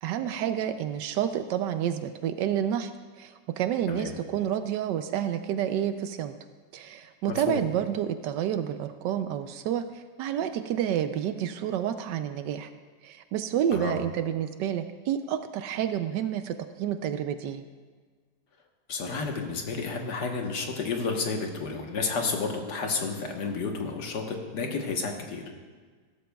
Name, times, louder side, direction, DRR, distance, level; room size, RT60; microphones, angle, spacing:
voice 1, 0.0-2.9 3.2-6.3 6.7-12.7 13.0-17.6, right 10 dB, 80° right, 9 dB, 1.2 m, -29 dB
voice 2, 7.3-7.6 13.7-13.9 18.9-25.4, left 4 dB, 70° left, 2 dB, 1.8 m, -31 dB
15.5 x 13.0 x 2.3 m, 1.5 s
omnidirectional pair, 1.9 m